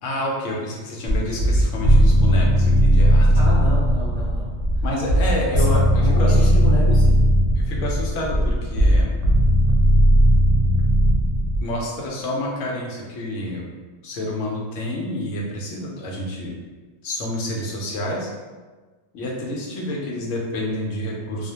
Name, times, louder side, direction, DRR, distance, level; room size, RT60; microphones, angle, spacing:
voice 1, 0.0-3.4 4.8-6.5 7.6-9.1 11.6-13.6 14.0-16.5 17.0-18.3 19.1-21.5, left 1 dB, 85° left, -2 dB, 0.9 m, -28 dB
sound 1, 1.1-11.6, equal, 85° right, 0.9 m, -17 dB
voice 2, 3.3-4.5 5.1-5.2 5.5-7.2, left 1 dB, 60° right, -9 dB, 0.4 m, -29 dB
2.4 x 2.0 x 2.7 m, 1.3 s
omnidirectional pair, 1.2 m